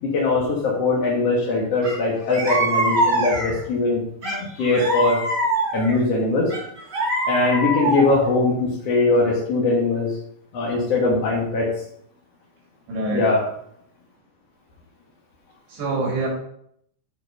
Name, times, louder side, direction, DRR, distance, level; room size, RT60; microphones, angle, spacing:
voice 1, 0.0-5.2 5.7-6.5 7.3-10.2 10.5-11.7 13.1-13.4, left 3 dB, 55° left, -4 dB, 1.9 m, -21 dB
sound 1, 1.8-2.0 2.3-3.7 4.2-6.0 6.5-8.3, right 1 dB, 35° right, 1.7 m, -23 dB
voice 2, 12.9-13.3 15.7-16.3, right 3 dB, 70° right, -2 dB, 4.4 m, -25 dB
9.2 x 5.1 x 5.4 m, 0.70 s
omnidirectional pair, 5.0 m